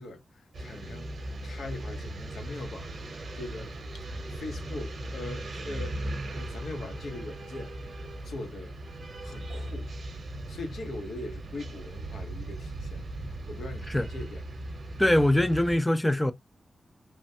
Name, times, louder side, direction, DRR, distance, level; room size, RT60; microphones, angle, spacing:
voice 1, 0.0-7.8 8.2-8.8 9.2-9.9 10.5-14.4, left 2 dB, 90° left, 0.9 m, -41 dB
sound 1, 0.5-15.8, right 1 dB, 50° right, 0.8 m, -38 dB
voice 2, 15.0-16.3, left 1 dB, 10° left, 0.3 m, -23 dB
3.2 x 2.1 x 2.6 m
wide cardioid pair, 170°, 0 cm